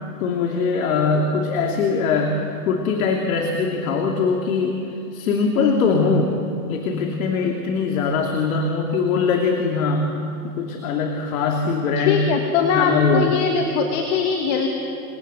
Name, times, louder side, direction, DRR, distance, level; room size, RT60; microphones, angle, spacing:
voice 1, 0.2-4.8 5.1-6.4 6.7-10.2 10.4-12.2 12.7-13.3, left 4 dB, 60° left, 2 dB, 2.9 m, -21 dB
voice 2, 12.0-14.7, left 6 dB, 40° left, 3 dB, 2.3 m, -21 dB
28.5 x 20.5 x 8.0 m, 2.6 s
hypercardioid pair, 145°, 46 cm